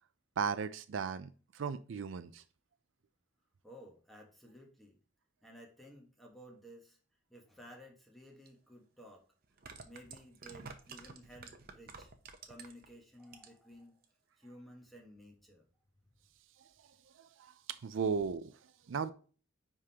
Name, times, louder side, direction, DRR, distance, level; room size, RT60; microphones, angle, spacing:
voice 1, 0.4-1.3 1.5-2.4 17.4-17.5 17.8-18.5 18.9-19.1, right 6 dB, 75° right, 12 dB, 0.4 m, -35 dB
voice 2, 3.6-4.9 5.4-7.0 7.3-9.2 9.8-12.1 12.5-14.0 14.4-15.7, equal, ahead, 0 dB, 1.4 m, -55 dB
sound 1, 8.5-8.6 9.4-12.9 13.2-13.7 14.0-14.1, right 5 dB, 50° right, 0.7 m, -50 dB
9.6 x 3.7 x 2.9 m, 0.39 s
head